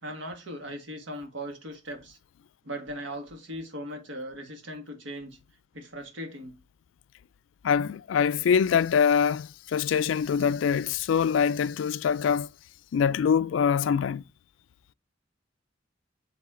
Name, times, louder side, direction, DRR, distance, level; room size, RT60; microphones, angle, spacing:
voice 1, 0.0-2.2 2.6-5.4 5.7-6.6, equal, 85° right, 1.6 m, -38 dB
voice 2, 7.6-12.5 12.9-14.2, left 7 dB, 85° left, 0.3 m, -24 dB
7.4 x 4.0 x 3.7 m
head